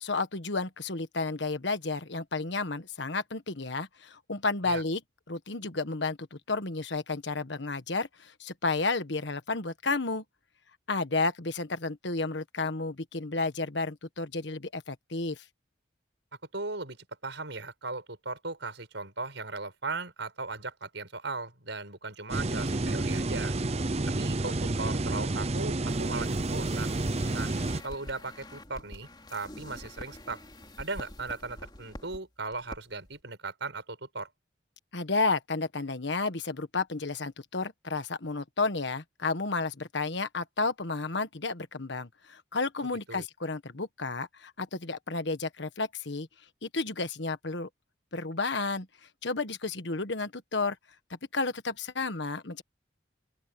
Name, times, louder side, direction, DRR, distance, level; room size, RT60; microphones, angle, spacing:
voice 1, 0.0-5.0 5.3-10.2 10.9-15.4 34.9-46.3 46.6-47.7 48.1-48.9 49.2-50.8 51.3-52.6, left 3 dB, 70° left, 1.4 m, -32 dB
voice 2, 16.5-23.6 24.2-27.0 27.3-27.6 27.8-30.4 30.8-34.3 43.1-43.3, right 3 dB, 75° right, 5.5 m, -37 dB
sound 1, 22.3-27.8, right 2 dB, 35° right, 0.7 m, -30 dB
sound 2, 25.9-32.2 32.5-32.8 33.0-33.2, left 1 dB, 25° left, 3.6 m, -46 dB
open air
head